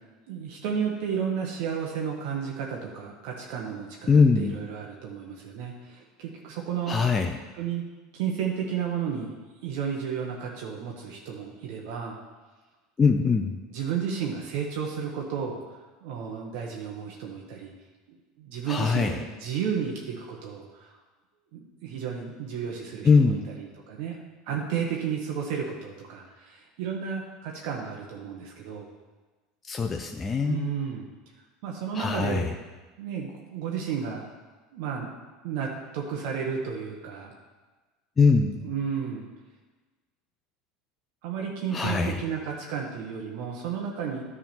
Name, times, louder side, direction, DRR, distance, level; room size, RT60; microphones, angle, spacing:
voice 1, 0.3-7.0 7.5-7.9 8.1-9.3 9.6-12.2 13.3-13.4 13.7-15.6 16.0-17.7 18.1-21.0 21.5-24.2 24.4-28.9 30.4-31.1 31.6-32.5 33.0-34.2 34.7-35.1 35.4-37.3 38.6-39.2 41.2-44.2, right 7 dB, 70° right, -1 dB, 1.2 m, -32 dB
voice 2, 4.1-4.6 6.9-7.3 13.0-13.5 18.7-19.1 23.0-23.4 29.6-30.7 31.9-32.4 38.2-38.7 41.7-42.2, left 4 dB, 25° left, 3 dB, 0.7 m, -22 dB
10.5 x 3.8 x 7.0 m, 1.3 s
hypercardioid pair, 90°, 0 cm